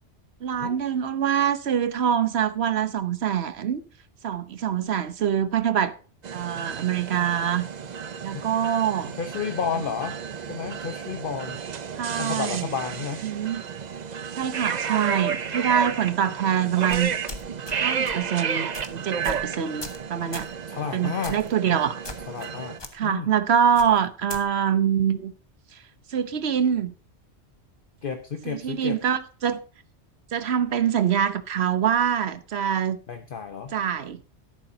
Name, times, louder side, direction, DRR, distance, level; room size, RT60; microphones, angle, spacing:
voice 1, 0.4-3.8 4.2-5.9 6.3-7.7 8.2-9.1 12.0-12.7 13.2-13.6 14.4-17.1 17.8-20.5 20.9-22.0 22.9-25.3 26.1-26.9 28.4-29.6 30.3-33.0 33.7-34.2, right 8 dB, 65° right, 1.1 m, -24 dB
sound 1, 6.2-22.8, right 7 dB, 45° right, 0.7 m, -32 dB
voice 2, 9.2-10.2 10.5-11.6 12.2-13.2 20.7-21.4 22.3-22.8 23.0-23.3 28.0-29.0 33.1-33.7, left 6 dB, 50° left, 1.0 m, -31 dB
sound 2, 16.9-17.8 18.1-18.3 18.7-18.9 19.2-19.5 19.8-20.0 20.3-20.5 21.2-21.5 22.0-22.5 22.8-22.9 23.8-24.4, left 2 dB, 20° left, 1.3 m, -38 dB
13.0 x 11.0 x 2.7 m
omnidirectional pair, 1.2 m